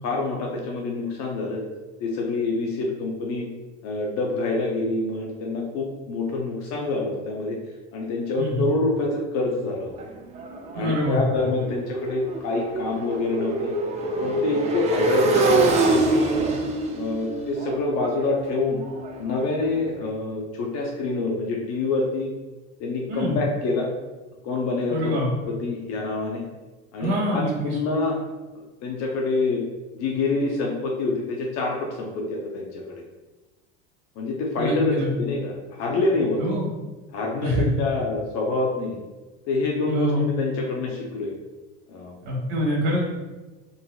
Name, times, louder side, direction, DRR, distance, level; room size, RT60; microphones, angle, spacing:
voice 1, 0.0-1.6 2.0-3.5 3.8-7.6 7.9-9.9 10.7-13.7 14.2-16.5 16.9-18.8 19.2-22.3 22.8-23.9 24.4-25.1 25.6-26.4 26.9-28.2 28.5-29.6 29.9-32.9 34.2-36.5 37.1-39.0 39.5-41.3 41.9-42.1, left 3 dB, 55° left, -1 dB, 0.6 m, -26 dB
voice 2, 8.4-8.7 10.7-11.2 23.1-23.4 24.9-25.3 27.0-27.8 34.6-35.1 36.4-36.7 37.4-37.7 39.9-40.3 42.2-43.0, equal, 75° right, -3 dB, 1.2 m, -25 dB
Motorcycle, 10.0-19.8, right 2 dB, 20° right, 0.4 m, -25 dB
3.9 x 2.5 x 2.3 m, 1.2 s
supercardioid pair, 120°, 32 cm